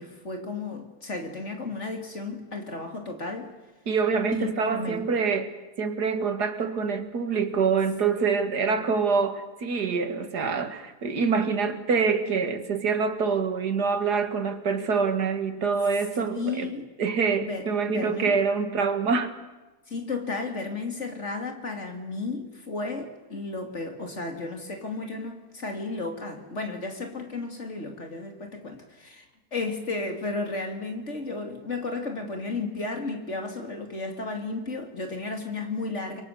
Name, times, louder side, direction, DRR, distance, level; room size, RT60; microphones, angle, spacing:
voice 1, 0.0-3.5 4.3-5.0 8.7-8.9 16.2-16.9 17.4-18.3 19.9-29.3 29.5-36.2, left 3 dB, 45° left, 3.3 m, -33 dB
voice 2, 3.9-16.7 17.0-19.4, right 5 dB, 85° right, 2.4 m, -26 dB
29.5 x 23.5 x 6.9 m
omnidirectional pair, 1.7 m